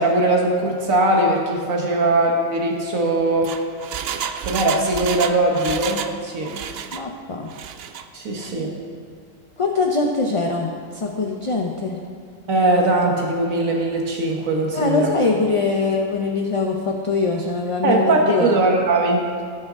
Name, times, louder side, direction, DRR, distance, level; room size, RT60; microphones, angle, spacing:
voice 1, 0.0-3.7 4.4-6.6 8.1-8.7 12.5-15.1 17.8-19.3, right 2 dB, 85° right, 0 dB, 1.6 m, -20 dB
Engine, 3.2-6.2 6.4-7.0 7.5-8.0 8.4-8.5, right 8 dB, 65° right, 0.7 m, -30 dB
voice 2, 6.9-7.5 9.6-12.0 14.7-18.5, left 3 dB, 35° left, 1 dB, 0.6 m, -23 dB
17.5 x 6.6 x 3.6 m, 2.2 s
omnidirectional pair, 1.4 m